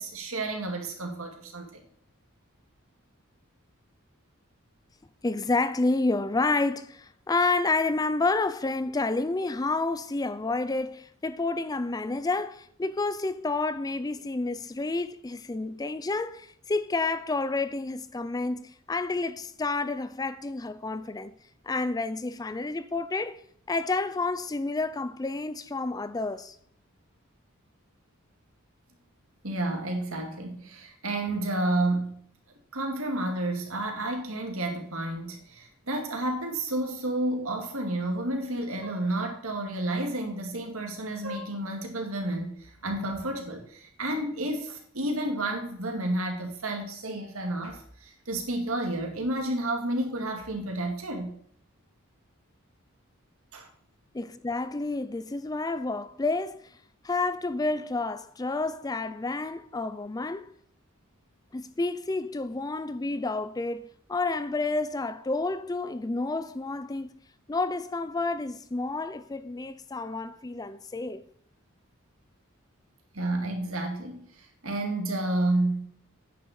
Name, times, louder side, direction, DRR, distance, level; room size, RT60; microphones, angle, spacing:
voice 1, 0.0-1.8 29.4-32.2 32.7-51.4 53.5-53.7 73.1-75.9, right 1 dB, 75° right, 2.3 m, -31 dB
voice 2, 5.2-21.3 21.6-23.4 23.7-26.6 54.1-56.7 57.0-60.5 61.5-67.2 67.5-71.2, left 3 dB, 20° left, 0.4 m, -29 dB
9.5 x 6.5 x 6.7 m
head